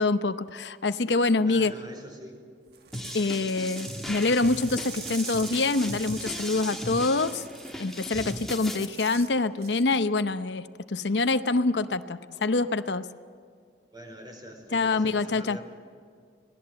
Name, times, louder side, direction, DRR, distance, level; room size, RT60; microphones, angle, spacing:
voice 1, 0.0-1.7 3.1-7.4 7.8-13.1 14.7-15.6, left 3 dB, 75° left, 11 dB, 0.8 m, -25 dB
voice 2, 1.5-2.4 13.9-15.6, equal, 25° right, 3 dB, 4.6 m, -44 dB
sound 1, 2.7-9.3 9.6-9.9, right 8 dB, 60° right, 1.6 m, -44 dB
sound 2, 2.9-8.8, left 1 dB, ahead, 1.7 m, -37 dB
26.0 x 19.0 x 7.7 m, 2.2 s
head